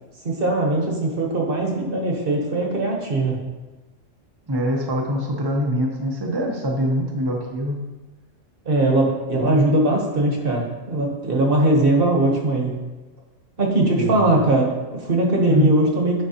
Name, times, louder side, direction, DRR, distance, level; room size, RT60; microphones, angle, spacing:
voice 1, 0.2-3.4 8.6-12.8 13.6-16.2, right 2 dB, 50° right, 0 dB, 1.2 m, -20 dB
voice 2, 4.5-7.8 9.4-9.6 13.9-14.3 15.5-15.7, equal, 25° right, -1 dB, 0.6 m, -24 dB
9.7 x 4.5 x 2.8 m, 1.2 s
omnidirectional pair, 1.3 m